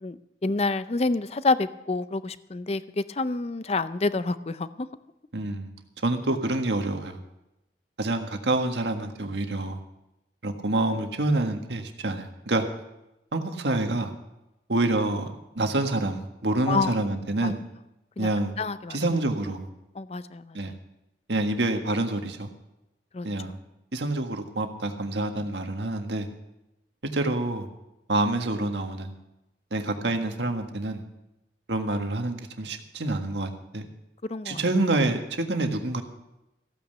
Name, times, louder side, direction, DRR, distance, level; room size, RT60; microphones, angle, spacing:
voice 1, 0.0-4.9 16.7-17.0 17.4-17.5 18.2-18.3 18.6-19.1 20.0-20.8 23.1-23.3 34.3-34.6, left 3 dB, 35° left, 14 dB, 0.5 m, -28 dB
voice 2, 5.3-5.7 6.0-7.2 8.0-9.8 10.4-12.6 13.3-14.1 14.7-17.6 18.2-18.5 18.9-19.7 20.5-20.7 21.3-22.5 23.2-23.6 23.9-26.3 27.1-27.7 28.1-29.1 29.7-31.0 31.7-33.8 34.4-36.0, right 2 dB, 75° right, 5 dB, 1.6 m, -27 dB
15.5 x 9.1 x 6.7 m, 0.90 s
head